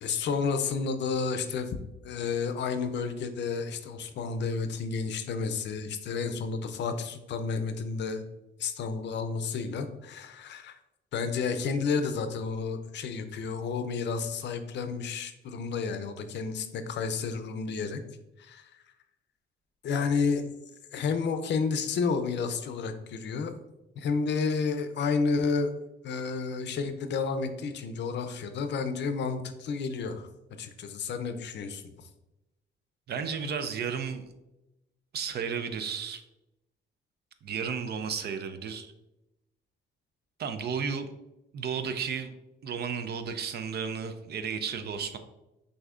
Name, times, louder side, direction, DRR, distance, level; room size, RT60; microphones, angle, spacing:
voice 1, 0.0-1.8 2.0-8.2 8.6-10.8 11.1-18.0 18.4-18.7 19.8-20.5 20.9-23.6 24.0-25.7 26.0-30.3 30.6-32.1, left 5 dB, 65° left, 8 dB, 0.5 m, -31 dB
voice 2, 33.1-34.3 35.1-36.2 37.4-38.9 40.4-41.1 41.5-42.3 42.6-45.2, right 6 dB, 55° right, 9 dB, 0.5 m, -33 dB
6.2 x 2.7 x 2.4 m, 0.95 s
cardioid pair, 90°, 20 cm